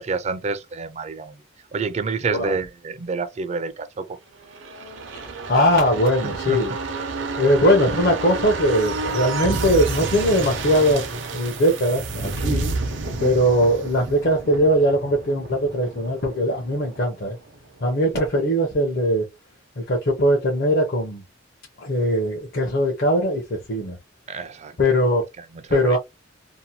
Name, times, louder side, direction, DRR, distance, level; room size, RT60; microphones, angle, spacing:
voice 1, 0.0-1.4 1.7-4.2 6.5-6.6 24.3-24.8 25.4-26.0, right 4 dB, 35° right, 0.4 m, -28 dB
sound 1, 4.4-17.9 18.2-18.3, right 3 dB, 80° right, 0.7 m, -30 dB
voice 2, 5.5-6.8 7.4-12.7 13.2-17.4 17.8-19.3 19.8-21.2 21.8-24.0 24.8-25.3 25.7-26.0, equal, 55° left, 0.7 m, -20 dB
2.7 x 2.1 x 2.7 m
head